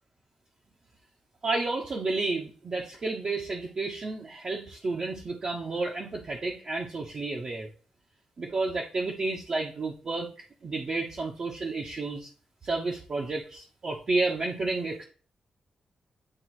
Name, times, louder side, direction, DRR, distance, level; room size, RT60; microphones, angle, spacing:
voice 1, 1.4-7.7 8.4-12.3 12.6-15.0, right 3 dB, 40° right, -2 dB, 1.0 m, -31 dB
9.9 x 3.3 x 3.1 m, 0.39 s
wide cardioid pair, 165°, 2 cm